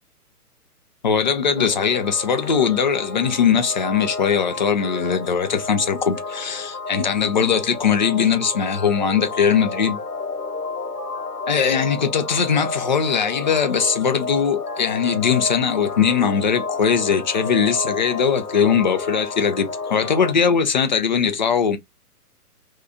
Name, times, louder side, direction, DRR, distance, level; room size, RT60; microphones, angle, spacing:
voice 1, 1.0-10.0 11.5-21.8, left 6 dB, 35° left, 0.4 m, -20 dB
sound 1, 1.6-20.3, left 4 dB, 85° left, 1.1 m, -31 dB
2.7 x 2.4 x 3.3 m
figure-of-eight pair, 125°, 46 cm